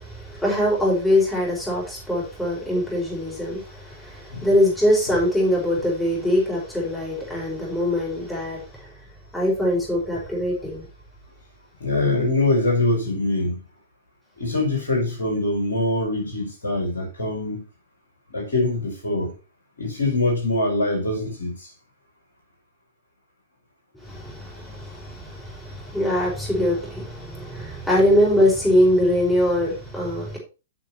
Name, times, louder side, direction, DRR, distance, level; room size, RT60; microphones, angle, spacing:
voice 1, 0.0-8.6 9.3-10.9 24.0-30.4, left 1 dB, 5° left, 5.3 m, -22 dB
voice 2, 11.8-13.6 14.4-17.6 18.3-19.3 19.8-21.7, left 2 dB, 70° left, 5.3 m, -23 dB
8.8 x 6.5 x 4.4 m
figure-of-eight pair, 110°, 0 cm